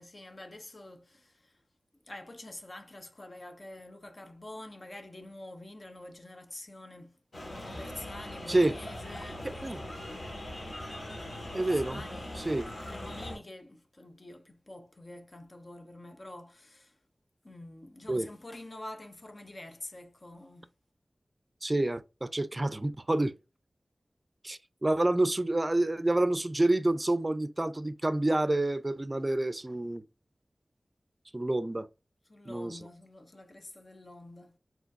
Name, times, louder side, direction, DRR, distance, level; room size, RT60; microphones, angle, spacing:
voice 1, 0.0-1.6 2.1-7.2 7.6-9.7 11.5-17.0 17.4-20.7 32.3-34.6, left 1 dB, 45° left, 0.8 m, -47 dB
sound 1, 7.3-13.4, left 1 dB, 65° left, 1.7 m, -41 dB
voice 2, 11.5-12.0 12.4-12.7 18.1-18.3 21.6-23.3 24.4-30.0 31.3-31.9 32.5-32.8, right 2 dB, 30° right, 0.5 m, -28 dB
4.9 x 3.8 x 2.6 m
wide cardioid pair, 50°, 0 cm